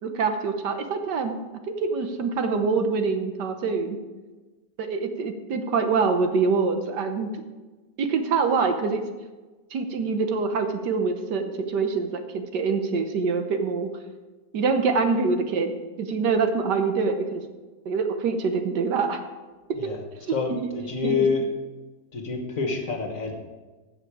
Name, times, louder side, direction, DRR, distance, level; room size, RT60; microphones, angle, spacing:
voice 1, 0.0-1.4 1.7-4.0 4.8-7.3 8.0-9.0 9.7-13.9 14.5-15.7 16.0-17.4 17.8-19.2 20.5-20.7 21.0-21.3, right 4 dB, 75° right, 6 dB, 1.6 m, -25 dB
voice 2, 20.3-21.5 22.1-23.3, left 5 dB, 50° left, 3 dB, 1.7 m, -27 dB
15.5 x 5.7 x 4.8 m, 1.3 s
omnidirectional pair, 1.9 m